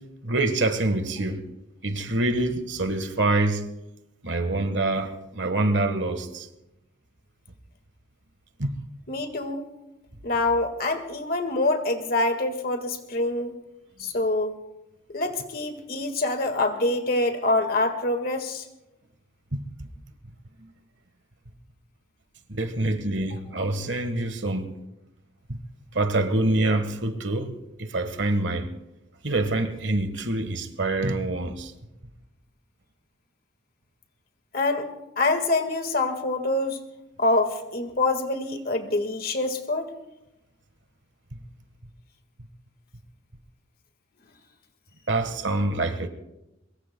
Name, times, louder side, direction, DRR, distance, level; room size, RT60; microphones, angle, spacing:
voice 1, 0.2-1.4 1.8-3.7 4.2-6.5 8.6-8.7 19.5-19.6 22.5-24.7 25.5-25.6 25.9-28.7 29.2-31.7 45.1-46.1, right 2 dB, 65° right, 1.4 m, -26 dB
voice 2, 9.1-9.7 10.2-13.5 14.0-14.5 15.1-18.7 34.5-34.9 35.2-36.8 37.2-39.9, left 2 dB, 50° left, 1.7 m, -25 dB
23.5 x 22.5 x 2.3 m
head